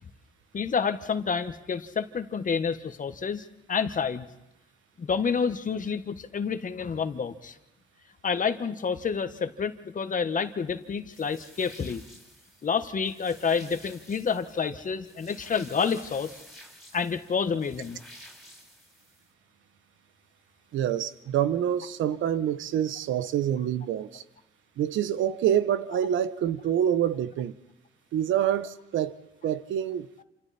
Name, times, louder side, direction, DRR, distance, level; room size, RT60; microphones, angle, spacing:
voice 1, 0.5-4.2 5.0-7.5 8.2-12.0 12.6-16.3 16.9-18.0, left 6 dB, 40° left, 1.5 m, -29 dB
sound 1, 11.1-19.3, equal, ahead, 6.2 m, -51 dB
voice 2, 20.7-24.2 24.8-27.5 28.1-29.1 29.4-30.1, right 10 dB, 80° right, 1.0 m, -26 dB
28.0 x 27.5 x 4.4 m
cardioid pair, 90°, 20 cm